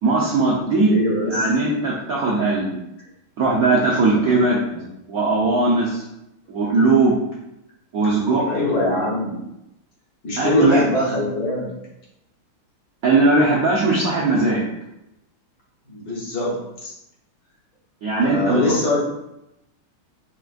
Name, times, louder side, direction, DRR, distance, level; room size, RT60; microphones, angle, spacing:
voice 1, 0.0-0.9 1.3-2.8 3.4-4.6 5.1-6.0 6.5-7.2 7.9-8.5 10.4-10.8 13.0-14.6 18.0-18.6, right 3 dB, 70° right, -5 dB, 0.8 m, -19 dB
voice 2, 0.7-1.5 4.1-4.8 6.6-6.7 8.5-9.4 10.2-11.7 15.9-16.9 18.2-19.0, left 1 dB, 55° left, -5 dB, 1.2 m, -23 dB
5.9 x 2.4 x 2.4 m, 0.87 s
omnidirectional pair, 2.3 m